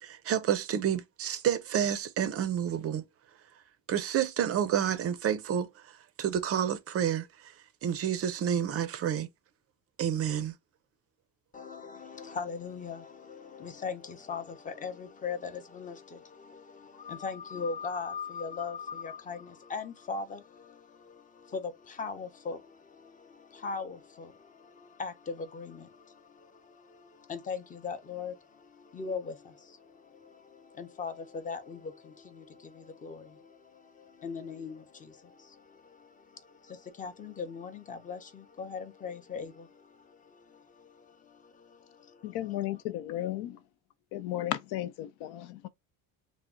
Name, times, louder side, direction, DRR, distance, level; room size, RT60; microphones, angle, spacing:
voice 1, 0.0-3.0 3.9-5.7 6.2-7.5 7.8-9.3 10.0-10.5, right 9 dB, 40° right, 0.4 m, -29 dB
voice 2, 11.5-42.4, left 5 dB, 20° left, 0.6 m, -40 dB
voice 3, 42.2-43.6 44.1-45.7, left 13 dB, 90° left, 0.6 m, -34 dB
3.4 x 2.0 x 3.7 m
cardioid pair, 145°, 38 cm